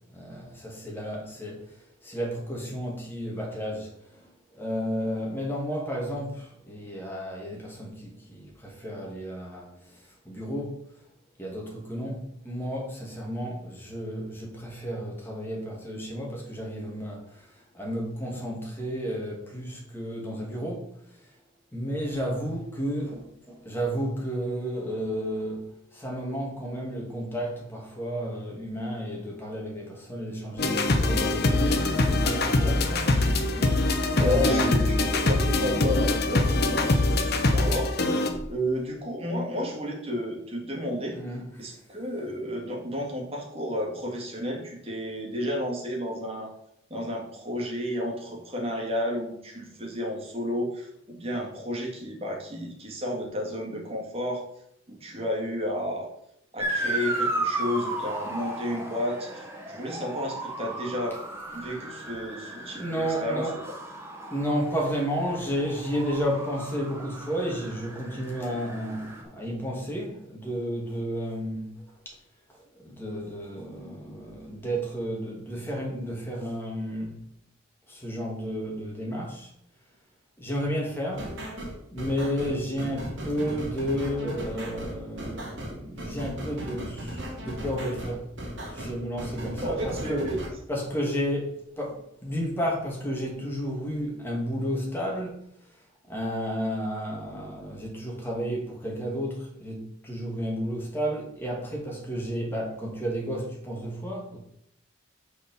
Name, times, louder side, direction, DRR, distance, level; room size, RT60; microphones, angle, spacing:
voice 1, 0.1-1.6 2.0-3.9 4.5-10.0 10.2-10.8 11.4-20.8 21.7-33.9 34.2-34.7 35.1-35.3 38.3-38.4 41.1-41.8 62.5-63.6 64.3-72.1 72.8-77.2 77.9-79.5 80.4-81.3 81.9-88.3 88.7-90.3 90.7-95.4 96.1-104.4, equal, 10° left, -2 dB, 2.4 m, -32 dB
sound 1, 30.6-38.3, left 2 dB, 50° left, 1.1 m, -23 dB
voice 2, 34.1-37.9 38.5-41.2 41.6-46.5 46.9-54.4 54.9-56.1 56.5-61.2 61.5-63.8 89.6-90.4, left 1 dB, 30° right, -1 dB, 2.4 m, -32 dB
Motor vehicle (road) / Siren, 56.6-69.2, right 2 dB, 15° right, 1.5 m, -35 dB
sound 2, 81.1-90.5, equal, 65° right, 3.3 m, -36 dB
6.2 x 6.0 x 7.0 m, 0.76 s
head